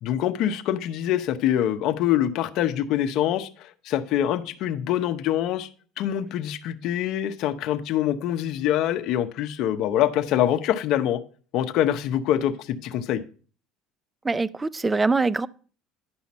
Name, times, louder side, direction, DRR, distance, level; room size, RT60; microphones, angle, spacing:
voice 1, 0.0-5.7 6.0-11.2 11.5-13.2, left 11 dB, 65° left, 0.8 m, -25 dB
voice 2, 14.2-15.5, right 3 dB, 15° right, 0.3 m, -23 dB
10.5 x 5.7 x 4.2 m
supercardioid pair, 105°, 0 cm